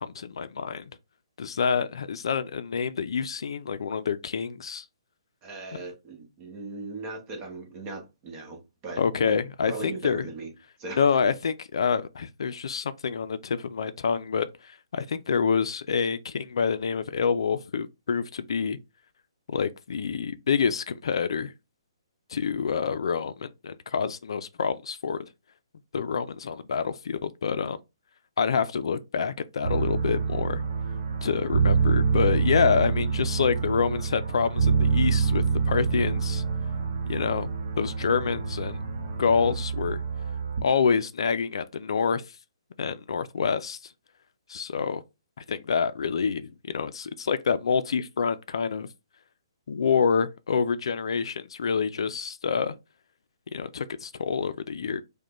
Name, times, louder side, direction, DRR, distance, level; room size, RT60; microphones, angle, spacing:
voice 1, 0.0-0.8 1.4-4.8 9.0-10.2 11.0-18.8 19.5-21.5 22.3-25.3 25.9-27.8 28.4-30.6 31.2-36.4 37.1-38.8 39.2-40.0 40.6-42.2 42.8-43.8 44.5-45.0 45.5-48.9 49.7-52.7 53.5-55.0, left 6 dB, 70° left, 0.4 m, -27 dB
voice 2, 5.4-10.5 10.8-11.2, right 3 dB, 25° right, 0.9 m, -39 dB
sound 1, 29.6-40.6, right 5 dB, 45° right, 1.0 m, -26 dB
5.0 x 2.2 x 3.0 m
hypercardioid pair, 155°, 3 cm